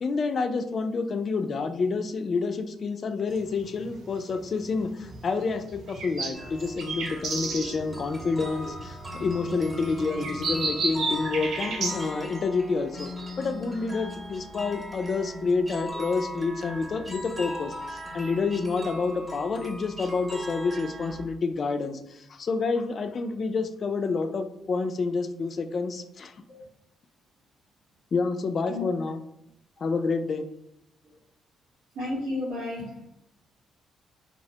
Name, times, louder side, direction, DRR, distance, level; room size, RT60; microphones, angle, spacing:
voice 1, 0.0-13.1 13.4-26.3 28.1-29.2 29.8-30.4, left 4 dB, 45° left, 7 dB, 0.3 m, -28 dB
sound 1, 3.3-12.0, right 3 dB, 70° right, 0.5 m, -34 dB
sound 2, 6.3-21.2, equal, 25° right, 0.6 m, -39 dB
voice 2, 31.9-33.1, left 2 dB, 90° right, -10 dB, 1.0 m, -33 dB
2.9 x 2.0 x 2.7 m, 0.76 s
cardioid pair, 90°, 0 cm